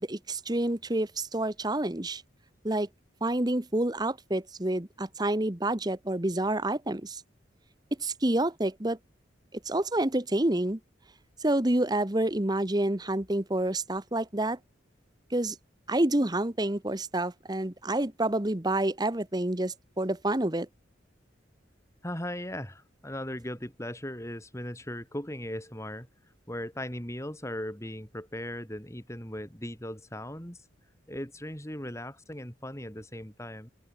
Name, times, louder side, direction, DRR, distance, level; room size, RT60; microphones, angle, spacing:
voice 1, 0.1-2.2 2.6-2.9 3.2-7.2 8.0-9.0 9.6-10.8 11.4-14.6 15.3-15.6 15.9-20.7, right 1 dB, 20° right, 1.2 m, -28 dB
voice 2, 22.0-26.1 26.5-30.6 31.1-33.7, left 1 dB, 15° left, 6.0 m, -38 dB
open air
head